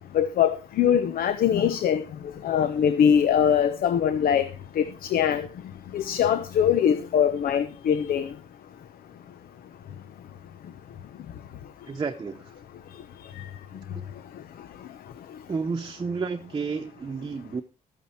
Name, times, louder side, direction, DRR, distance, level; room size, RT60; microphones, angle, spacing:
voice 1, 0.1-2.0 2.4-4.5 4.8-5.5 5.9-8.3, left 8 dB, 80° left, 11 dB, 0.9 m, -22 dB
voice 2, 11.9-12.6 13.9-14.1 15.5-17.6, right 5 dB, 30° right, 5 dB, 0.9 m, -31 dB
13.5 x 8.9 x 4.4 m, 0.31 s
cardioid pair, 125°, 15 cm